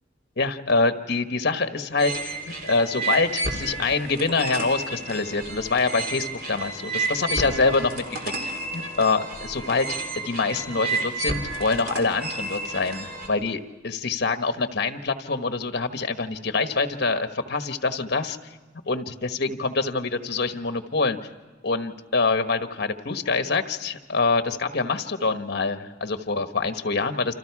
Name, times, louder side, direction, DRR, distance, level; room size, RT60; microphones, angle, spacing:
voice 1, 0.4-9.9 10.2-18.4 18.9-21.2 21.6-27.3, left 4 dB, 60° left, 8 dB, 1.3 m, -25 dB
sound 1, 2.0-13.3, right 2 dB, 50° right, 3.4 m, -31 dB
29.0 x 26.5 x 4.8 m, 1.2 s
head